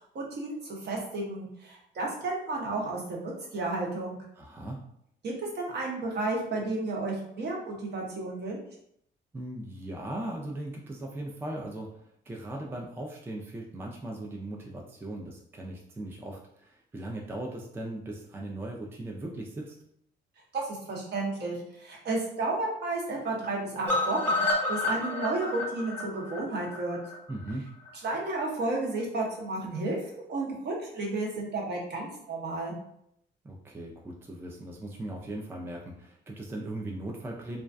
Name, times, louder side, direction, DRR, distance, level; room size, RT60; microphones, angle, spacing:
voice 1, 0.1-4.2 5.2-8.6 20.5-27.0 28.0-30.0 30.3-32.7, right 2 dB, 55° right, -2 dB, 0.8 m, -32 dB
voice 2, 4.4-4.8 9.3-11.9 12.3-19.8 27.3-27.7 33.4-37.6, right 1 dB, 10° right, 0 dB, 0.3 m, -38 dB
sound 1, 23.9-27.9 28.2-28.3 28.6-28.7 29.0-29.1, left 2 dB, 10° left, 0.9 m, -30 dB
2.3 x 2.2 x 2.5 m, 0.72 s
cardioid pair, 90°, 20 cm